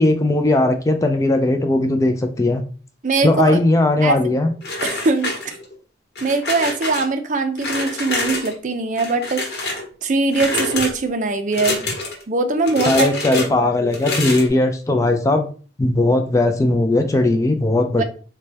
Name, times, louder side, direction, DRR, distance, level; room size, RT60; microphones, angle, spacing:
voice 1, 0.0-2.6 3.2-4.5 12.9-15.5 15.8-18.0, left 2 dB, 20° left, 5 dB, 0.3 m, -18 dB
voice 2, 3.0-3.6 4.0-4.2 4.8-5.6 6.2-9.4 10.0-11.8 12.3-13.9 18.0-18.1, right 3 dB, 45° right, 7 dB, 0.4 m, -21 dB
sound 1, 4.6-5.8 6.2-7.1 7.6-8.5 9.0-9.9 10.3-10.9 11.5-12.2 12.6-13.5 13.9-14.5, left 2 dB, 60° left, 1.1 m, -26 dB
4.0 x 2.2 x 3.2 m, 0.39 s
head